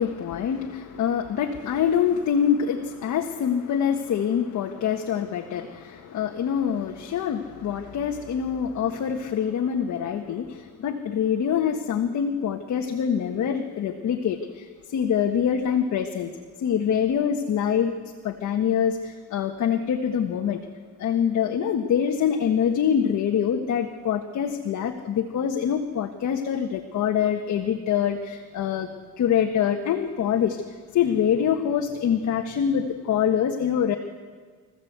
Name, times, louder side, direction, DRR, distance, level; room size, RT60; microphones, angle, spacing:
voice 1, 0.0-14.7 14.9-16.3 16.6-17.9 18.2-20.6 21.0-28.9 29.2-30.6 30.9-34.0, left 8 dB, 70° left, 3 dB, 1.6 m, -25 dB
25.5 x 15.0 x 8.1 m, 1.5 s
cardioid pair, 90°, 30 cm